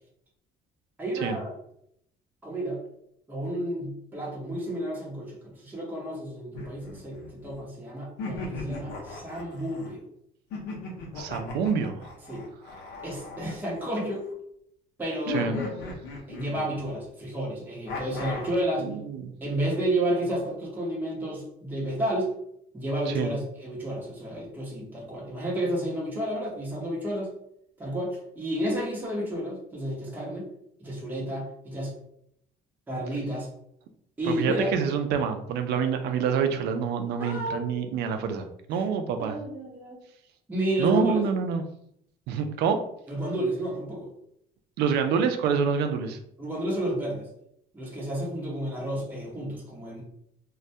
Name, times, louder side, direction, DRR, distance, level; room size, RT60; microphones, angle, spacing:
voice 1, 1.0-1.5 2.4-2.8 3.3-10.0 12.3-12.5 13.0-14.3 15.0-15.8 16.3-18.9 19.4-22.3 22.7-27.3 27.8-30.5 30.8-31.9 32.9-33.5 34.2-34.7 37.2-37.7 38.7-38.8 39.2-40.0 40.5-41.2 43.1-44.1 46.4-47.3 47.7-50.0, right 1 dB, 10° right, -4 dB, 0.8 m, -31 dB
sound 1, 6.5-7.6 8.2-9.9 10.5-14.3 15.3-17.0 17.9-18.7, left 3 dB, 90° left, 0.6 m, -38 dB
voice 2, 11.2-12.1 15.3-15.6 18.8-19.3 23.1-23.3 34.3-39.4 40.8-41.6 42.3-42.8 44.8-46.2, right 6 dB, 80° right, 7 dB, 0.4 m, -27 dB
2.2 x 2.1 x 2.6 m, 0.73 s
cardioid pair, 110°, 17 cm